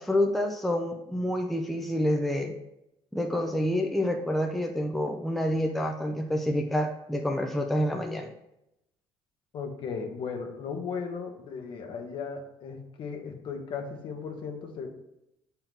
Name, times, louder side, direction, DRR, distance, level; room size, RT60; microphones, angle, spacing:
voice 1, 0.0-2.5 3.1-8.3, left 1 dB, ahead, 3 dB, 0.6 m, -28 dB
voice 2, 9.5-14.9, left 5 dB, 55° left, 3 dB, 1.4 m, -36 dB
7.5 x 4.5 x 3.7 m, 0.84 s
cardioid pair, 130°, 10 cm